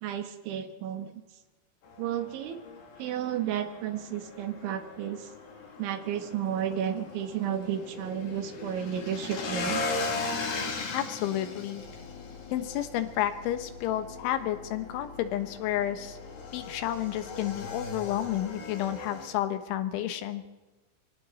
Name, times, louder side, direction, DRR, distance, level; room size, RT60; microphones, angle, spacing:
voice 1, 0.0-1.2 2.0-2.6 3.0-5.3 5.8-9.8, right 9 dB, 75° right, 8 dB, 3.8 m, -32 dB
Motorcycle / Engine, 1.8-19.3, left 3 dB, 55° left, 4.3 m, -38 dB
voice 2, 10.9-11.8 12.5-16.2 16.5-20.5, left 12 dB, 80° left, 9 dB, 3.6 m, -31 dB
sound 1, 11.7-18.4, left 5 dB, 50° right, 8.4 m, -49 dB
25.0 x 24.5 x 4.2 m, 1.2 s
omnidirectional pair, 5.5 m